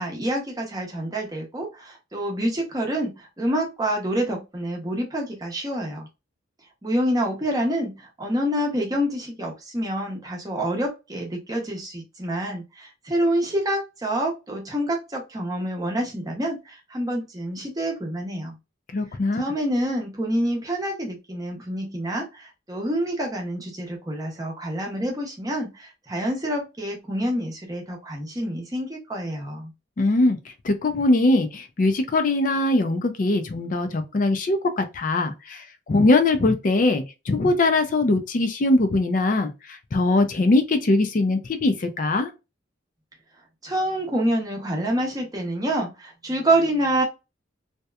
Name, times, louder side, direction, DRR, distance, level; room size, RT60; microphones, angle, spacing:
voice 1, 0.0-6.1 6.8-18.6 19.3-29.7 43.6-47.0, right 1 dB, 20° right, 0.7 m, -27 dB
voice 2, 18.9-19.4 30.0-30.4 30.6-42.3, left 2 dB, 45° left, 0.4 m, -21 dB
2.8 x 2.2 x 2.2 m
head